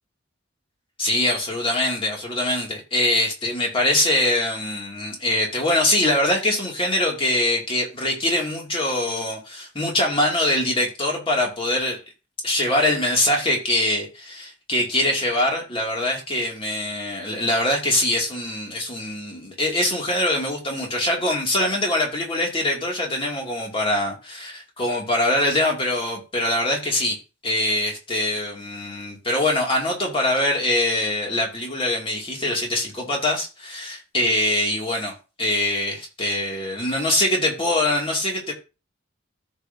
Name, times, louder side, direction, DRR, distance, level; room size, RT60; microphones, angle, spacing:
voice 1, 1.0-12.0 12.4-27.2 27.4-38.5, left 1 dB, 30° left, 2.6 m, -23 dB
14.0 x 5.6 x 2.8 m
head